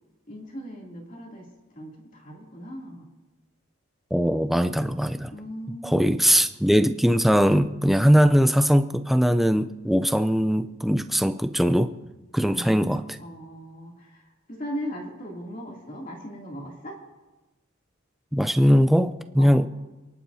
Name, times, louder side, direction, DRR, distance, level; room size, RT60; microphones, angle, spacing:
voice 1, 0.3-1.5 1.7-3.1 5.3-6.2 12.4-14.2 14.5-17.0 19.4-19.5, equal, 40° left, -1 dB, 2.9 m, -38 dB
voice 2, 4.1-5.3 5.8-11.9 12.3-13.0 18.3-19.7, equal, ahead, 10 dB, 0.4 m, -20 dB
28.5 x 11.5 x 2.8 m, 1.1 s
head